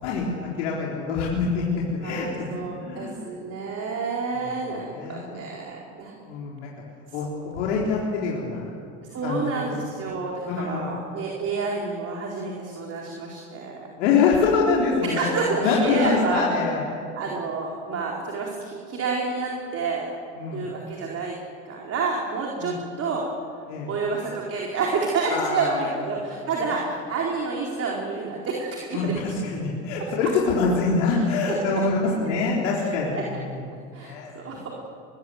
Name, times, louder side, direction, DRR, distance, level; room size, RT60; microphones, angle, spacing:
voice 1, 0.0-3.2 4.3-5.3 6.3-6.7 7.1-8.7 9.2-9.7 10.4-10.9 14.0-15.3 15.6-16.8 20.4-20.7 22.6-22.7 23.7-23.9 25.3-25.9 26.2-26.7 28.9-29.1 29.5-33.4 34.0-34.3, left 4 dB, 80° left, -4 dB, 4.1 m, -25 dB
voice 2, 2.0-6.1 9.1-13.9 15.0-16.6 17.1-20.1 20.5-21.3 21.6-23.2 23.9-29.1 31.1-31.2 33.1-33.2 33.9-34.7, right 4 dB, 45° right, -2 dB, 4.5 m, -29 dB
23.0 x 21.5 x 8.1 m, 2.3 s
supercardioid pair, 95°, 35 cm